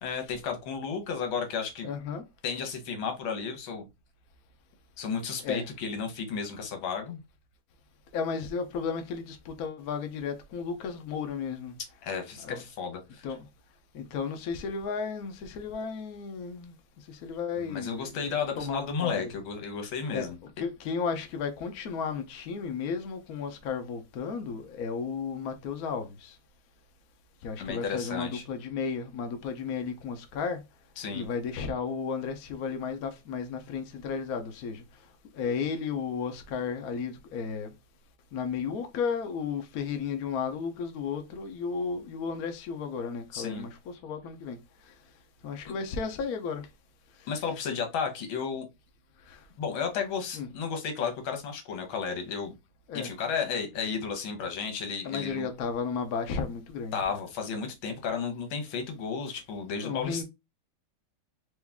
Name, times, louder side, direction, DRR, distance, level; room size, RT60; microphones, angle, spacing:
voice 1, 0.0-1.9 2.4-3.9 5.0-7.2 12.0-13.3 17.6-20.4 27.6-28.4 31.0-31.3 43.3-43.7 47.3-48.7 49.6-52.5 52.9-55.5 56.9-60.2, left 6 dB, 80° left, 1.9 m, -33 dB
voice 2, 1.8-2.2 5.4-5.7 8.1-11.8 12.4-12.6 13.2-13.5 13.9-16.7 17.1-19.3 20.1-20.3 20.6-26.4 27.4-30.6 31.1-34.8 35.3-37.7 38.3-44.6 44.9-45.0 45.4-46.7 47.2-47.3 49.3-49.4 50.3-50.5 52.9-53.1 55.0-57.2 59.8-60.2, left 5 dB, 60° left, 1.1 m, -34 dB
4.7 x 2.6 x 3.5 m
omnidirectional pair, 2.2 m